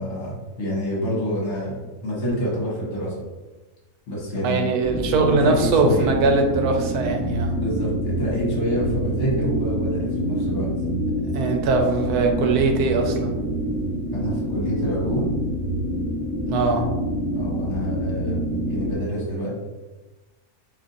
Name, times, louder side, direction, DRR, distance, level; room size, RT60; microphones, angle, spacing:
voice 1, 0.0-3.2 4.1-6.1 7.5-10.7 14.1-15.3 17.3-19.5, equal, 55° left, -5 dB, 1.2 m, -27 dB
voice 2, 4.4-7.6 11.3-13.4 16.4-16.9, right 3 dB, 85° right, 3 dB, 1.1 m, -21 dB
sound 1, 4.8-19.0, equal, 25° left, 0.9 m, -26 dB
2.8 x 2.5 x 3.8 m, 1.2 s
omnidirectional pair, 1.6 m